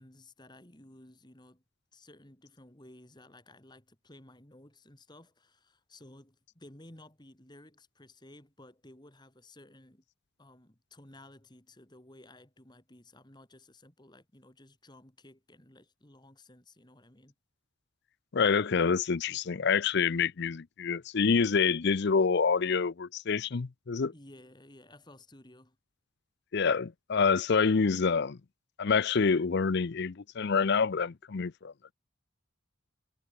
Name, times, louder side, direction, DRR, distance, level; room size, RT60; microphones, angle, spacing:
voice 1, 0.0-1.6 1.9-10.0 10.4-17.3 24.1-25.8, left 1 dB, 20° left, 2.4 m, -55 dB
voice 2, 18.3-24.1 26.5-28.4 28.8-31.7, left 5 dB, 55° left, 0.5 m, -27 dB
head